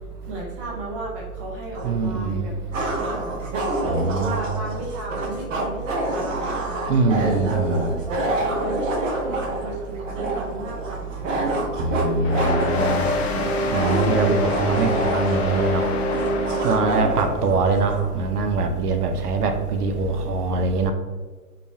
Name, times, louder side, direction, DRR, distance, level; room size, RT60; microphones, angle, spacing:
voice 1, 0.3-2.5 3.6-7.4 8.0-11.5 12.0-12.8, right 1 dB, 20° right, -3 dB, 0.7 m, -35 dB
sound 1, 1.7-1.9 2.7-18.1, right 1 dB, 55° right, 1.0 m, -27 dB
voice 2, 1.8-2.4 3.8-4.4 6.9-7.9 11.8-13.0 13.7-15.8 16.6-20.9, right 3 dB, 75° right, 6 dB, 0.7 m, -23 dB
sound 2, 12.2-17.3, left 1 dB, 45° left, 0.6 m, -25 dB
5.2 x 2.3 x 2.6 m, 1.3 s
hypercardioid pair, 150°, 46 cm